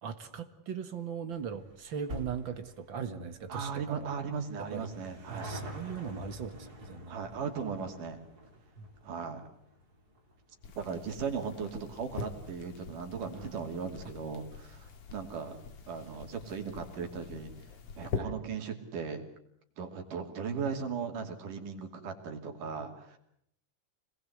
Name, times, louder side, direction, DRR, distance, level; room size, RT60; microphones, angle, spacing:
voice 1, 0.0-4.1 4.7-4.9 5.3-7.2 8.8-8.9 13.3-13.5 18.1-18.3 20.6-20.7, right 6 dB, 45° right, 8 dB, 2.0 m, -39 dB
sound 1, 1.3-14.1 14.4-14.5 15.3-15.4 15.6-15.7 16.0-16.1, equal, 30° right, 4.7 m, -49 dB
voice 2, 3.5-5.5 7.1-8.2 9.0-9.4 10.8-15.6 15.9-17.5 18.0-19.3 19.8-23.2, right 6 dB, 80° right, 4 dB, 4.3 m, -37 dB
sound 2, 10.6-18.2, left 5 dB, 55° left, 2.9 m, -44 dB
27.0 x 20.5 x 8.0 m, 0.71 s
omnidirectional pair, 3.6 m